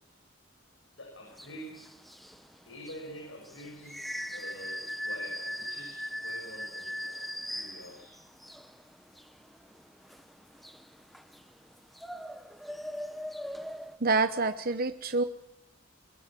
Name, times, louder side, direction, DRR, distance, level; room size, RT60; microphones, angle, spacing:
voice 1, 1.0-1.9 2.6-8.2, equal, 85° left, 0 dB, 7.0 m, -47 dB
sound 1, 1.3-14.0, equal, ahead, 1.0 m, -40 dB
voice 2, 14.0-15.2, right 3 dB, 50° right, 9 dB, 1.0 m, -27 dB
22.5 x 21.5 x 7.5 m, 0.84 s
head